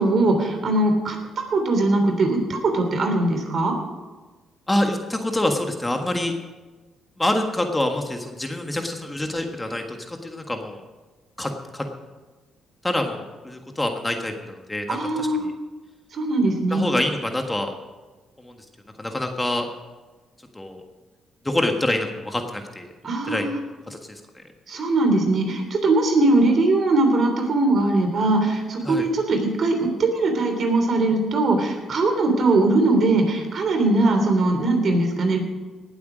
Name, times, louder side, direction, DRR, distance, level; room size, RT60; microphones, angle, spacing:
voice 1, 0.0-3.8 14.9-15.5 16.1-16.8 23.0-23.6 24.7-35.4, right 2 dB, 55° right, 4 dB, 3.2 m, -21 dB
voice 2, 4.7-6.3 7.2-10.8 11.4-11.9 12.8-15.5 16.7-17.7 18.4-18.5 19.0-19.6 20.5-20.8 21.4-22.9 23.3-23.5 23.9-24.2 28.8-29.0, left 1 dB, 15° left, 4 dB, 1.5 m, -26 dB
18.5 x 8.3 x 5.1 m, 1.2 s
cardioid pair, 90°, 0 cm